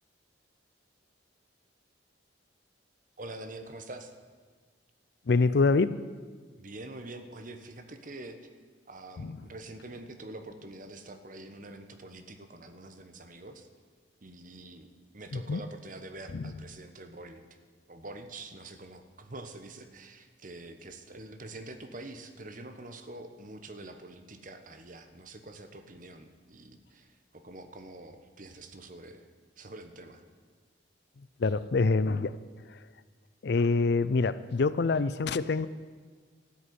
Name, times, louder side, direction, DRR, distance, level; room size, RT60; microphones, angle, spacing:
voice 1, 3.2-4.1 6.6-8.4 8.9-13.7 14.2-14.9 15.1-17.4 17.9-29.3 29.6-30.2, right 2 dB, 45° right, 8 dB, 1.1 m, -45 dB
voice 2, 5.3-6.0 9.2-9.4 15.3-15.6 16.3-16.5 31.4-32.4 32.7-32.8 33.4-35.7, left 4 dB, 60° left, 16 dB, 0.5 m, -26 dB
13.0 x 8.1 x 9.6 m, 1.5 s
head